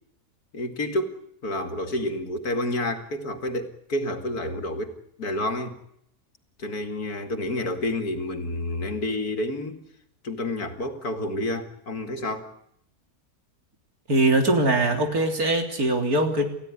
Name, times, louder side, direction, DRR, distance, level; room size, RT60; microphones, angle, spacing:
voice 1, 0.5-5.8 6.6-9.8 10.2-12.5, left 1 dB, 85° left, 6 dB, 2.8 m, -29 dB
voice 2, 14.1-16.5, right 2 dB, 75° right, 4 dB, 3.9 m, -22 dB
29.5 x 16.0 x 9.9 m, 0.78 s
omnidirectional pair, 1.6 m